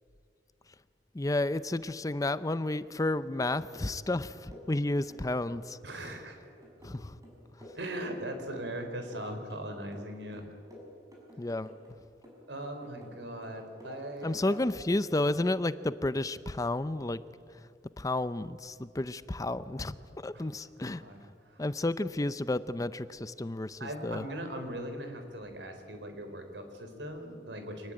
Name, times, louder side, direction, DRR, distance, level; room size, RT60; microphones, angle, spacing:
voice 1, 1.1-5.8 6.8-7.2 11.4-11.7 14.2-17.2 18.0-21.0 21.6-24.2, left 2 dB, 20° left, 14 dB, 0.5 m, -31 dB
sound 1, 3.3-3.9 4.1-5.8 6.0-8.8 9.1-10.1 10.3-11.9 12.2-13.2 13.4-15.0 15.4-15.5, left 1 dB, 20° right, 6.0 m, -52 dB
voice 2, 5.8-6.4 7.7-10.5 12.5-14.6 20.3-20.5 20.8-21.7 23.8-27.9, right 1 dB, 80° right, 6 dB, 4.1 m, -40 dB
26.0 x 19.5 x 8.8 m, 2.5 s
head